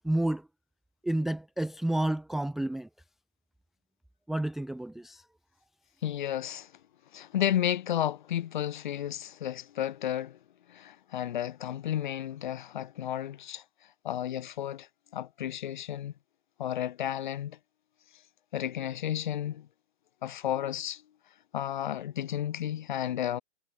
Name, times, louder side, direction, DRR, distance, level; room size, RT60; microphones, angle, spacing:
voice 1, 0.0-0.5 1.0-2.9 4.3-5.2, right 1 dB, ahead, 0.8 m, -30 dB
voice 2, 6.0-6.7 7.1-10.4 10.7-13.6 14.0-14.9 15.1-16.1 16.6-17.6 18.5-19.7 20.2-21.0 21.5-23.4, left 11 dB, 40° left, 3.2 m, -32 dB
figure-of-eight pair, 130°, 37 cm